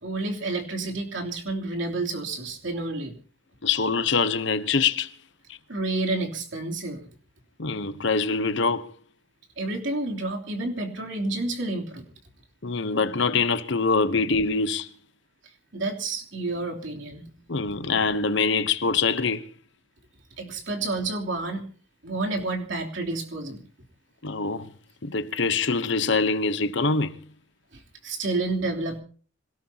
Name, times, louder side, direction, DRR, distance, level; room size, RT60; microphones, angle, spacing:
voice 1, 0.0-3.1 5.7-7.0 9.6-12.0 15.7-17.3 20.4-21.6 22.0-23.6 27.7-29.0, right 2 dB, 60° right, 3.2 m, -30 dB
voice 2, 3.6-5.1 7.6-8.9 12.6-14.9 17.5-19.4 24.2-24.7 25.0-27.2, left 4 dB, 60° left, 0.9 m, -24 dB
26.0 x 17.5 x 2.9 m
head